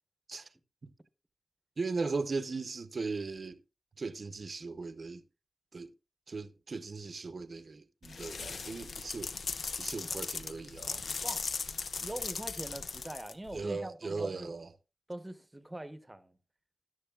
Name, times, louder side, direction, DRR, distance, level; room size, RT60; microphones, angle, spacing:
voice 1, 1.8-3.6 4.0-5.2 5.7-5.9 6.3-11.1 13.5-14.7, right 4 dB, 50° right, 0.6 m, -38 dB
sound 1, 8.0-13.6, left 5 dB, 75° left, 0.6 m, -38 dB
voice 2, 12.0-14.5 15.1-16.4, right 1 dB, 15° right, 0.8 m, -43 dB
13.5 x 11.0 x 2.3 m
wide cardioid pair, 125°, 0 cm